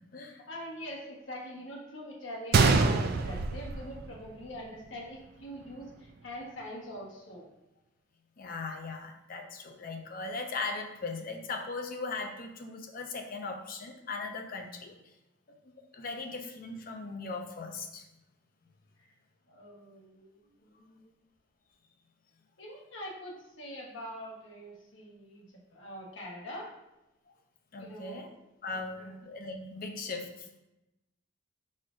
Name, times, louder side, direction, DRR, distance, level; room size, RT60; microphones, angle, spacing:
voice 1, 0.3-7.5 16.0-16.1 19.5-21.1 22.6-25.4 25.7-26.7 27.8-28.2 28.7-29.1, equal, 70° left, -2 dB, 1.2 m, -44 dB
Gunshot gunfire, 2.5-4.5 4.8-4.9 5.6-5.8, right 4 dB, 50° right, 0.3 m, -25 dB
voice 2, 8.4-14.9 15.9-18.1 27.7-28.3 28.6-30.5, left 3 dB, 45° left, 4 dB, 0.5 m, -38 dB
4.8 x 4.3 x 2.5 m, 0.94 s
head